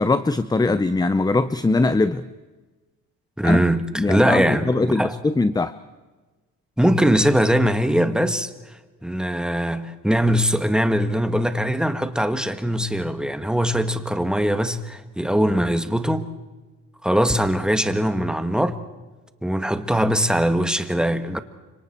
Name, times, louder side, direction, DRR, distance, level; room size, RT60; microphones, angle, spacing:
voice 1, 0.0-2.3 3.4-3.6 4.0-5.7, left 3 dB, 15° left, 0.7 m, -21 dB
voice 2, 3.4-5.1 6.8-8.5 9.0-16.3 17.0-18.8 19.4-21.4, equal, 5° right, 1.7 m, -21 dB
30.0 x 25.5 x 4.5 m
cardioid pair, 90°, 30 cm